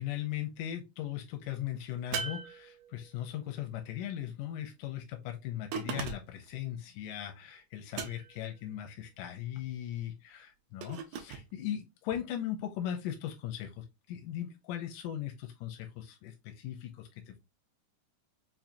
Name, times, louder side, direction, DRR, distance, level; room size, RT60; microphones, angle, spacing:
voice 1, 0.0-17.4, left 11 dB, 85° left, 4 dB, 2.2 m, -38 dB
sound 1, 2.1-3.2 5.7-6.5 7.9-8.5 10.8-11.5, right 7 dB, 75° right, 1.7 m, -38 dB
5.6 x 2.5 x 2.6 m, 0.24 s
omnidirectional pair, 3.6 m